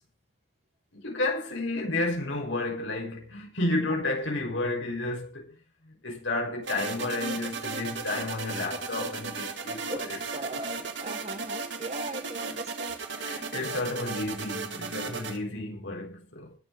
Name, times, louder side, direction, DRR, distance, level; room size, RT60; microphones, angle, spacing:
voice 1, 0.9-5.6 5.8-10.2 10.5-10.7 13.1-16.6, left 2 dB, 75° left, 6.1 m, -31 dB
sound 1, 6.6-15.4, right 4 dB, 70° right, 2.2 m, -35 dB
voice 2, 9.9-13.0, right 2 dB, 35° right, 1.8 m, -39 dB
20.5 x 7.1 x 5.0 m
head